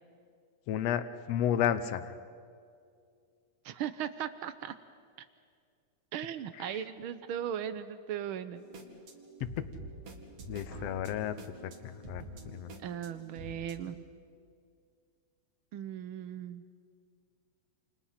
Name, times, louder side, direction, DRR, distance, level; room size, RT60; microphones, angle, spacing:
voice 1, 0.7-2.1 6.6-6.8 9.4-9.7 10.5-11.4 11.6-12.2 12.5-12.7, left 10 dB, 70° left, 12 dB, 1.9 m, -32 dB
voice 2, 3.6-4.8 5.2-5.3 6.1-8.7 12.8-14.0 15.7-16.6, right 9 dB, 80° right, 12 dB, 1.2 m, -38 dB
sound 1, 8.6-13.7, right 2 dB, 55° right, 3.1 m, -47 dB
28.5 x 28.5 x 5.8 m, 2.3 s
omnidirectional pair, 3.3 m